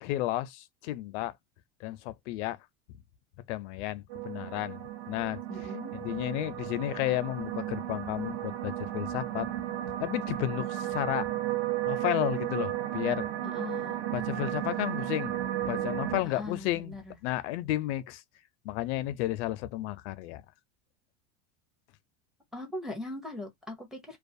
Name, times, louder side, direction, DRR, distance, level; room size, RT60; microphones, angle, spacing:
voice 1, 0.0-1.3 1.8-2.6 3.5-4.8 5.1-5.4 6.0-9.5 10.0-11.3 11.9-13.3 14.1-15.3 15.6-17.0 17.2-18.2 18.6-20.4, left 15 dB, 85° left, 0.5 m, -32 dB
sound 1, 4.1-16.2, right 13 dB, 70° right, 0.7 m, -34 dB
voice 2, 5.5-5.9 13.4-14.0 16.2-17.2 22.5-24.2, left 2 dB, ahead, 0.5 m, -40 dB
2.3 x 2.3 x 2.5 m
cardioid pair, 155°, 34 cm